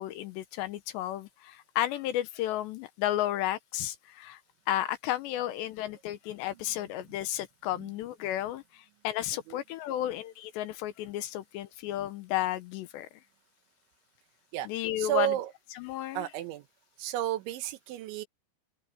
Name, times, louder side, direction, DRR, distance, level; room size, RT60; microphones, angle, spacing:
voice 1, 0.0-4.4 4.7-13.1 14.7-15.3 15.8-16.2, left 13 dB, 80° left, 2.8 m, -33 dB
voice 2, 15.0-15.5 16.2-16.7 17.0-18.3, right 13 dB, 80° right, 3.4 m, -32 dB
open air
omnidirectional pair, 5.4 m